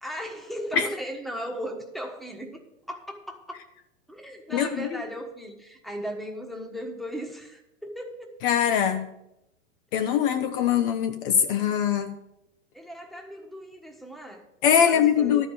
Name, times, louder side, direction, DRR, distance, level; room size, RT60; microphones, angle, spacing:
voice 1, 0.0-2.6 2.9-3.6 4.1-8.4 12.7-15.5, equal, ahead, 1.3 m, -37 dB
voice 2, 4.5-4.9 8.4-9.1 9.9-12.2 14.6-15.5, left 8 dB, 45° left, 0.8 m, -22 dB
12.0 x 5.0 x 7.7 m
figure-of-eight pair, 100°, 38 cm